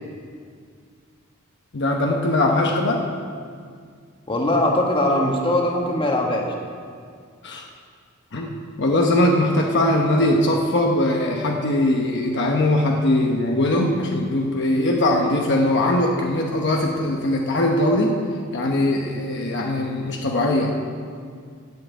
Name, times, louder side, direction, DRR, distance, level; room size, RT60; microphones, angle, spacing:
voice 1, 1.7-3.1 7.4-7.6 8.3-18.1 18.5-20.7, left 1 dB, 55° left, 0 dB, 0.9 m, -21 dB
voice 2, 4.3-6.5, left 1 dB, 25° left, 0 dB, 1.5 m, -21 dB
9.2 x 7.7 x 8.3 m, 2.1 s
head